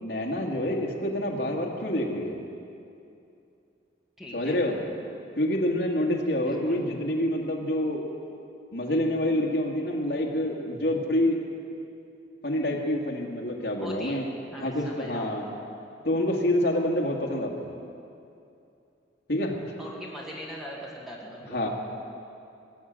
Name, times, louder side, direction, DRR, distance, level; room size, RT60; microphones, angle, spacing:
voice 1, 0.0-2.4 4.3-4.8 5.4-8.1 8.7-11.4 12.4-14.2 14.6-15.5 16.0-17.7 19.3-19.5 21.5-21.7, left 1 dB, 60° left, -1 dB, 2.0 m, -27 dB
voice 2, 4.2-4.6 6.4-6.8 13.8-14.2 14.5-15.3 19.8-21.6, equal, ahead, -4 dB, 2.1 m, -40 dB
20.5 x 7.4 x 8.9 m, 2.6 s
head